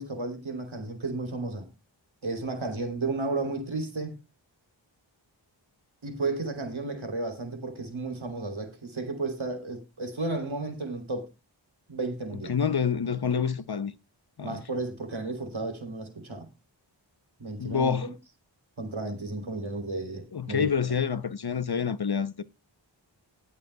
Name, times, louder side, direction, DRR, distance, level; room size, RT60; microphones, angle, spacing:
voice 1, 0.0-1.7 2.2-4.2 6.0-11.3 11.9-12.5 14.4-16.5 17.4-18.1 18.8-20.7, right 3 dB, 90° right, 3.3 m, -33 dB
voice 2, 12.5-13.9 14.4-14.6 17.6-18.1 20.3-22.4, left 6 dB, 55° left, 0.8 m, -27 dB
20.5 x 6.9 x 2.3 m
wide cardioid pair, 55°, 46 cm